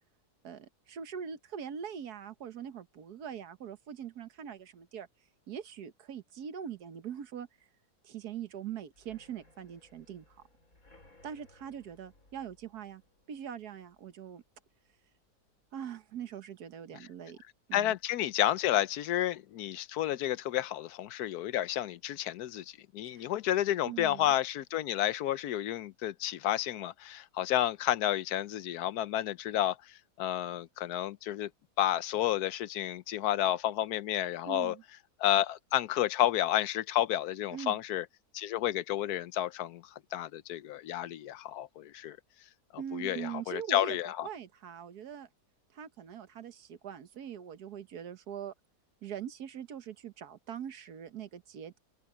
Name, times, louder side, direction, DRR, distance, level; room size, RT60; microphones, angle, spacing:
voice 1, 0.4-5.1 5.5-7.5 8.0-10.4 11.2-13.0 13.3-14.4 15.7-17.4 17.7-17.9 23.1-23.3 23.9-24.3 34.4-34.8 37.5-37.8 42.8-44.0 44.2-45.3 45.7-48.5 49.0-51.8, right 8 dB, 80° right, 1.6 m, -42 dB
sound 1, 8.9-16.6 16.9-17.3 17.6-17.7 18.1-18.2, left 2 dB, 60° left, 6.7 m, -64 dB
voice 2, 17.7-31.5 31.8-34.7 35.2-38.0 38.3-39.8 40.1-42.2 42.7-44.3, left 12 dB, 80° left, 1.2 m, -31 dB
open air
omnidirectional pair, 1.7 m